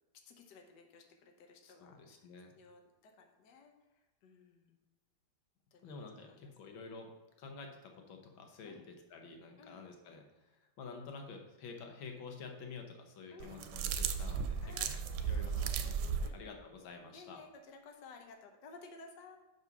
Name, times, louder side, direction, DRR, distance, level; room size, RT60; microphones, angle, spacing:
voice 1, 0.2-2.3 2.5-3.7 4.2-4.8 5.7-6.5 8.6-8.8 9.6-9.8 13.3-13.7 14.6-14.9 15.2-15.3 15.6-15.9 16.2-16.4 17.1-19.4, left 4 dB, 65° left, 3 dB, 1.4 m, -56 dB
voice 2, 1.6-2.6 5.8-7.1 7.4-14.9 15.2-16.0 16.3-17.4, left 4 dB, 90° left, 3 dB, 1.8 m, -50 dB
sound 1, 13.4-16.3, right 7 dB, 90° right, 1.4 m, -35 dB
5.5 x 5.3 x 5.9 m, 1.1 s
omnidirectional pair, 2.1 m